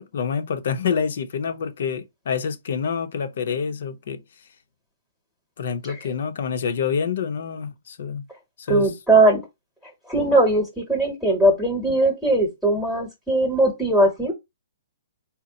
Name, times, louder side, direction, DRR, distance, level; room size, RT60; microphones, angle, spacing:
voice 1, 0.0-4.2 5.6-8.2 8.6-8.9, left 6 dB, 60° left, 0.7 m, -27 dB
voice 2, 8.7-9.4 10.1-14.3, right 2 dB, ahead, 1.1 m, -19 dB
4.3 x 2.1 x 3.9 m
hypercardioid pair, 160°, 0 cm